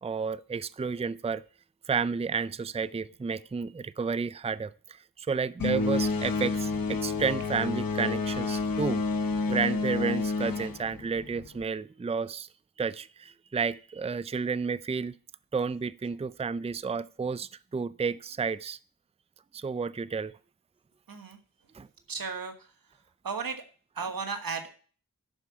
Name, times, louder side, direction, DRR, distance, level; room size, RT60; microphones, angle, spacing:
voice 1, 0.0-1.4 1.9-9.0 9.5-12.5 12.8-15.2 15.5-18.8 19.5-20.3 21.7-21.9, right 5 dB, 20° right, 17 dB, 0.4 m, -31 dB
sound 1, 5.6-11.6, left 3 dB, 80° left, 1.0 m, -29 dB
voice 2, 21.1-21.4 22.1-22.5 23.2-23.6 24.0-24.7, right 5 dB, 90° right, 7 dB, 1.4 m, -34 dB
11.5 x 4.8 x 7.2 m, 0.41 s
wide cardioid pair, 50°, 34 cm